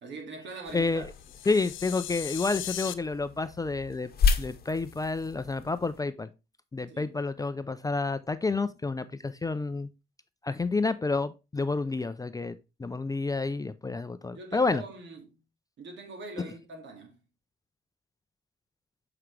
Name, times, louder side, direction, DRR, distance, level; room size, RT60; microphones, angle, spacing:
voice 1, 0.0-1.1 6.9-7.1 14.3-15.4 15.8-17.2, right 3 dB, 65° right, 2.1 m, -42 dB
sound 1, 0.6-6.0, left 5 dB, 50° left, 1.0 m, -33 dB
voice 2, 0.7-1.1 1.5-4.1 4.4-6.3 6.7-9.9 10.4-14.8, left 3 dB, 20° left, 0.4 m, -29 dB
sound 2, 1.1-2.9, left 13 dB, 80° left, 0.6 m, -38 dB
7.8 x 4.8 x 3.2 m
cardioid pair, 90°, 20 cm